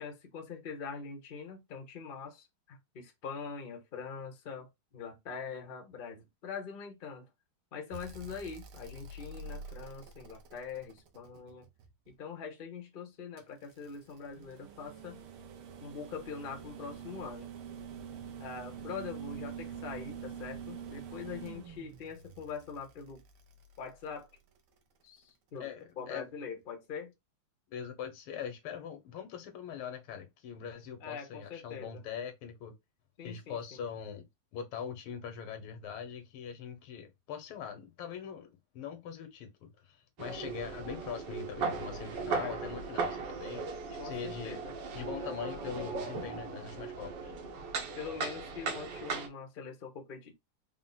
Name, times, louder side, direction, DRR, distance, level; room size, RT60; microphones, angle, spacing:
voice 1, 0.0-4.7 4.9-7.3 7.7-11.7 12.1-15.2 15.8-17.5 18.4-23.2 23.8-24.3 25.0-25.7 26.0-27.1 31.0-32.0 33.2-33.8 42.3-42.6 44.0-44.7 47.9-50.3, left 6 dB, 60° left, 0.5 m, -43 dB
sound 1, 7.9-12.1 13.4-24.6 26.1-26.2, right 6 dB, 85° right, 1.7 m, -46 dB
voice 2, 25.6-26.3 27.7-32.7 33.2-34.2 34.5-44.6 44.9-47.3, left 7 dB, 85° left, 1.8 m, -42 dB
sound 2, 40.2-49.3, right 4 dB, 65° right, 1.4 m, -37 dB
4.6 x 2.0 x 3.9 m
omnidirectional pair, 2.3 m